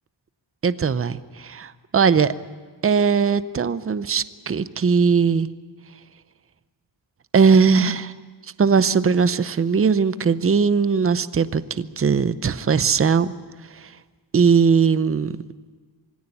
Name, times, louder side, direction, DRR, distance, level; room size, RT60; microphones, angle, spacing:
voice 1, 0.6-2.3 2.8-5.5 7.3-8.1 8.6-13.3 13.8-13.9 14.3-15.4, right 5 dB, 30° right, 14 dB, 0.6 m, -19 dB
23.5 x 17.0 x 10.0 m, 1.5 s
wide cardioid pair, 160°, 43 cm